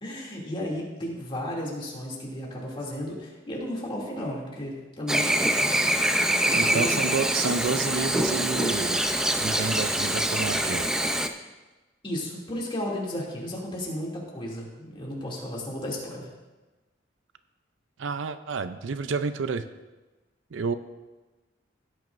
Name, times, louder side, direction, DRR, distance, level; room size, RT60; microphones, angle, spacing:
voice 1, 0.0-5.4 6.4-7.2 12.0-16.3, left 1 dB, 30° left, -3 dB, 2.6 m, -34 dB
Chirp tweet / Buzz, 5.1-11.3, right 1 dB, 5° right, 0.5 m, -25 dB
voice 2, 6.5-9.1 9.4-10.9 18.0-19.7 20.5-20.7, right 5 dB, 85° right, 11 dB, 0.5 m, -30 dB
16.0 x 9.1 x 2.6 m, 1.2 s
head